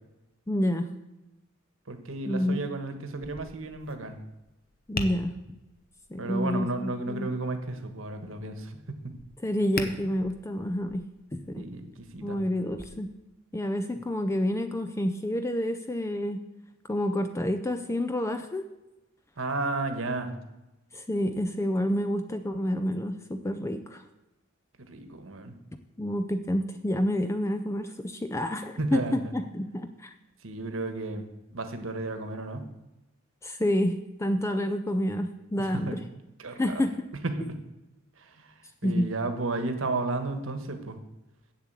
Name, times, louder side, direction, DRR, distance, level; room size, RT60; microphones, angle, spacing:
voice 1, 0.5-0.9 2.2-2.6 4.9-5.6 6.1-7.3 9.4-11.0 11.3-11.7 12.2-13.1 13.5-16.4 16.9-18.6 20.9-24.0 26.0-30.1 33.4-36.0 36.6-36.9 38.8-39.1, left 1 dB, 15° left, 8 dB, 0.4 m, -29 dB
voice 2, 1.9-4.2 6.2-9.1 11.6-11.9 12.1-12.4 19.4-20.3 24.9-25.5 28.8-29.2 30.4-31.3 31.5-32.7 35.6-36.0 36.4-36.8 37.2-37.6 38.2-38.5 38.8-41.0, right 2 dB, 70° right, 7 dB, 1.3 m, -33 dB
Tap, 3.2-12.8, left 3 dB, 45° left, 0.9 m, -42 dB
7.4 x 7.3 x 8.2 m, 0.99 s
head